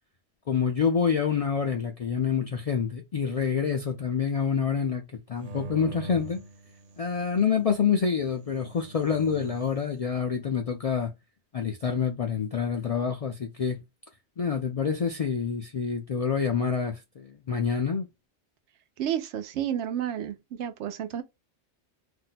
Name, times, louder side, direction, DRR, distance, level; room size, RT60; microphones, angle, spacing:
voice 1, 0.5-5.0 5.3-6.4 7.0-11.1 11.5-13.8 14.4-18.1, left 6 dB, 65° left, 0.3 m, -27 dB
sound 1, 5.4-7.3 8.3-9.8, right 1 dB, 50° right, 0.5 m, -42 dB
voice 2, 19.0-21.2, right 10 dB, 85° right, 0.9 m, -31 dB
2.6 x 2.1 x 3.9 m
omnidirectional pair, 1.1 m